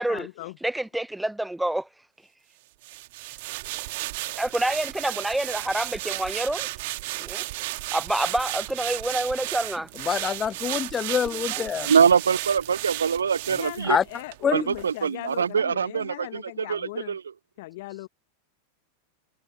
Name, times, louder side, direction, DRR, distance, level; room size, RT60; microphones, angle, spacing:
voice 1, 0.0-0.5 13.6-17.1 17.6-18.1, left 19 dB, 50° left, 1.3 m, -38 dB
voice 2, 0.6-1.9 4.4-6.7 7.2-7.4 7.9-9.9 11.5-11.6, right 1 dB, 5° right, 0.9 m, -27 dB
sound 1, 2.8-14.4 14.7-14.9, right 21 dB, 50° right, 2.0 m, -34 dB
voice 3, 10.0-11.9 13.9-14.0 14.4-14.7, left 7 dB, 20° left, 1.2 m, -25 dB
voice 4, 11.8-14.0 14.5-17.3, right 6 dB, 70° right, 0.5 m, -23 dB
figure-of-eight pair, 90°, 0 cm